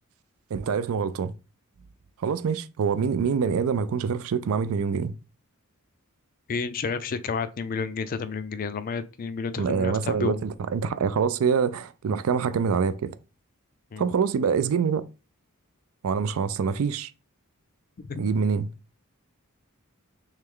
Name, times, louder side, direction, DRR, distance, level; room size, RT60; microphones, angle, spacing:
voice 1, 0.5-1.3 2.2-5.1 9.6-13.1 14.0-15.0 16.0-17.1 18.2-18.7, right 6 dB, 65° right, 0.4 m, -25 dB
voice 2, 6.5-10.4 13.9-14.0 18.1-18.2, left 5 dB, 40° left, 0.4 m, -31 dB
3.3 x 3.2 x 3.6 m
head